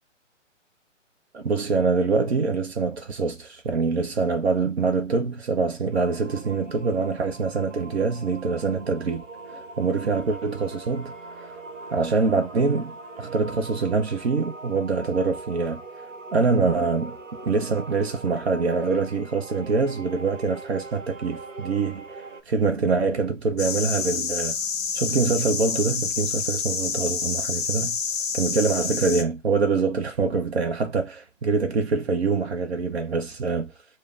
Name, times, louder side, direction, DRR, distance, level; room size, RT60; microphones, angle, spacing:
voice 1, 1.3-9.2 9.5-11.1 11.4-11.5 11.9-15.8 16.3-17.2 17.4-24.5 24.9-27.9 28.4-33.7, right 4 dB, 55° right, 0.8 m, -25 dB
sound 1, 5.9-22.4, right 3 dB, 80° right, 1.1 m, -41 dB
sound 2, 23.6-29.2, left 6 dB, 30° left, 0.7 m, -28 dB
6.6 x 2.2 x 2.4 m
hypercardioid pair, 150°, 37 cm